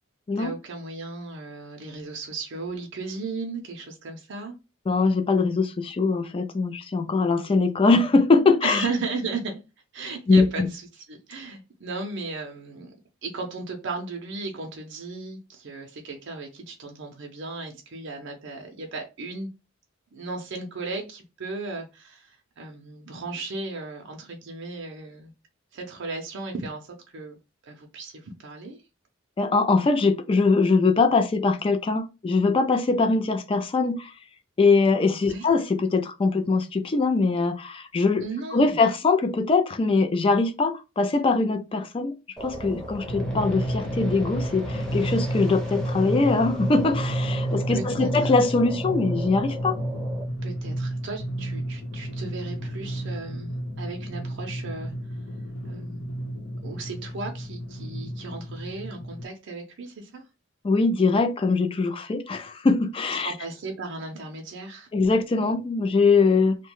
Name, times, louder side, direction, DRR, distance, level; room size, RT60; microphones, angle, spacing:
voice 1, 0.4-4.6 8.6-9.6 9.9-12.9 13.2-19.5 20.1-25.3 25.7-27.4 27.6-28.8 35.3-35.5 38.2-38.8 47.7-48.3 50.4-54.9 55.6-56.1 56.6-60.2 63.2-64.9, right 3 dB, 60° right, 0.5 m, -35 dB
voice 2, 4.9-8.8 10.3-10.7 29.4-34.1 34.6-38.2 38.5-42.2 42.4-49.8 60.6-63.3 64.9-66.6, left 3 dB, 25° left, 0.3 m, -22 dB
sound 1, 42.4-50.2, right 1 dB, 5° left, 0.7 m, -37 dB
Drum, 43.1-59.3, right 1 dB, 75° left, 0.8 m, -31 dB
2.7 x 2.2 x 3.0 m
head